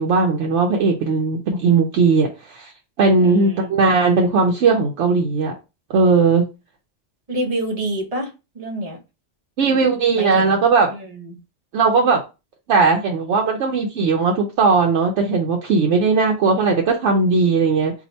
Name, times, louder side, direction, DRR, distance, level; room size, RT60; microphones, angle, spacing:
voice 1, 0.0-2.7 3.0-5.5 5.9-6.5 9.6-10.9 11.7-12.2 12.7-17.9, right 4 dB, 90° right, 0.9 m, -18 dB
voice 2, 3.2-3.7 7.3-9.0 10.2-10.6 10.9-11.4, right 1 dB, 35° right, 0.7 m, -28 dB
2.8 x 2.5 x 4.1 m
omnidirectional pair, 1.2 m